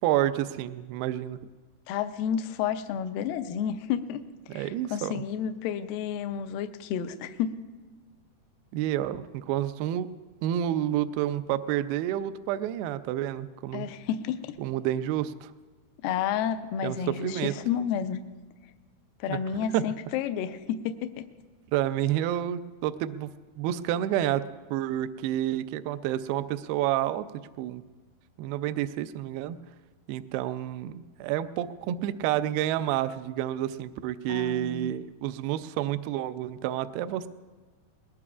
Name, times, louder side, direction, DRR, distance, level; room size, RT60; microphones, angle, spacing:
voice 1, 0.0-1.4 4.5-5.1 8.7-10.1 10.4-13.9 14.6-15.5 16.8-17.5 19.3-19.8 21.7-23.3 23.6-24.4 24.7-27.3 27.6-27.8 28.4-29.6 30.1-37.3, right 12 dB, 80° right, 11 dB, 2.3 m, -29 dB
voice 2, 1.9-4.2 4.5-7.5 13.7-14.5 16.0-18.2 19.2-21.2 34.3-34.9, left 8 dB, 80° left, 8 dB, 2.1 m, -31 dB
21.0 x 20.5 x 2.5 m, 1.3 s
omnidirectional pair, 4.6 m